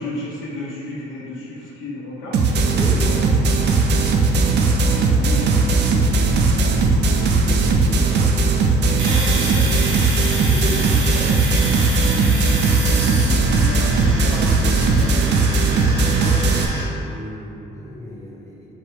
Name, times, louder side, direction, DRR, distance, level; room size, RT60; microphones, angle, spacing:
voice 1, 0.0-2.4 2.9-3.3 3.7-4.1 4.9-6.2 6.5-6.6 7.1-8.4 8.8-9.8 10.2-10.5 10.9-11.3 11.9-16.4, left 1 dB, 80° left, -6 dB, 1.0 m, -34 dB
sound 1, 2.3-16.6, right 3 dB, 60° right, 0.5 m, -18 dB
voice 2, 2.7-3.2 10.5-10.9 17.0-18.7, left 1 dB, 15° left, -5 dB, 0.9 m, -33 dB
Domestic sounds home sounds, 9.0-16.8, right 2 dB, 80° right, 1.0 m, -29 dB
4.3 x 2.2 x 4.6 m, 2.8 s
cardioid pair, 90°, 20 cm